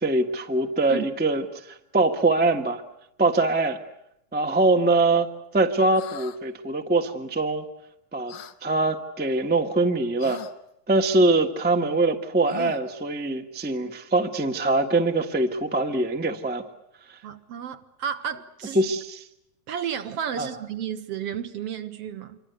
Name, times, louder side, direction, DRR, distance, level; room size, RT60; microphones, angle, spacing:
voice 1, 0.0-2.8 3.2-3.8 4.3-5.3 5.5-7.6 8.1-8.3 8.6-10.4 10.9-16.6 18.7-19.2 20.4-20.5, right 2 dB, 15° right, 0.3 m, -23 dB
sound 1, 5.9-6.4 8.3-8.6 10.2-10.5 12.5-13.0, left 12 dB, 90° left, 2.9 m, -41 dB
voice 2, 17.2-18.8 19.7-22.4, right 8 dB, 60° right, 2.0 m, -32 dB
27.0 x 24.0 x 8.1 m
omnidirectional pair, 3.5 m